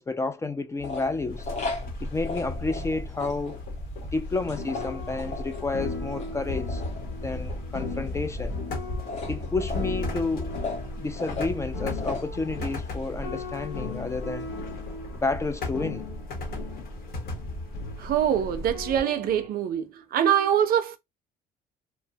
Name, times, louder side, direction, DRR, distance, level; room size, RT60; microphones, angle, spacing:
voice 1, 0.0-1.5 2.0-3.6 4.1-6.8 7.2-8.6 9.3-10.5 11.0-14.5 15.1-16.0, left 3 dB, 15° left, 0.3 m, -30 dB
sound 1, 0.8-15.0, left 4 dB, 45° left, 0.9 m, -39 dB
sound 2, 1.3-19.0, left 1 dB, 65° left, 1.0 m, -36 dB
sound 3, 4.4-19.5, left 3 dB, 80° left, 0.7 m, -39 dB
voice 2, 18.0-21.0, right 9 dB, 60° right, 0.5 m, -24 dB
2.8 x 2.1 x 2.7 m
cardioid pair, 110°, 17 cm